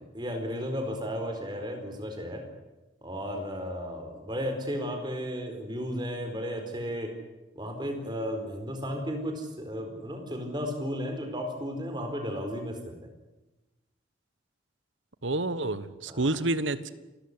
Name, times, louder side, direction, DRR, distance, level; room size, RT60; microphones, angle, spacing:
voice 1, 0.0-2.4 3.0-7.1 7.5-13.0 16.1-16.4, equal, 25° right, 5 dB, 4.4 m, -34 dB
voice 2, 15.2-16.9, right 2 dB, 80° right, 14 dB, 1.4 m, -29 dB
28.5 x 13.5 x 9.9 m, 1.1 s
head